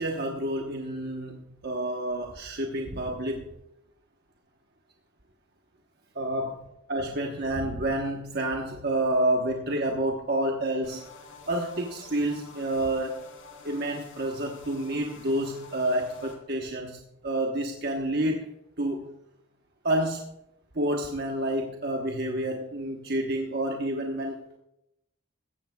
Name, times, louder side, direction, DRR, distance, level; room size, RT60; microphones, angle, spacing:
voice 1, 0.0-3.5 6.1-11.0 11.5-13.2 13.6-18.5 18.8-19.1 19.8-20.3 20.7-24.6, right 1 dB, 50° right, 1 dB, 1.1 m, -29 dB
sound 1, 10.8-16.4, left 4 dB, 70° left, 2.8 m, -49 dB
16.0 x 14.0 x 2.3 m, 0.83 s
head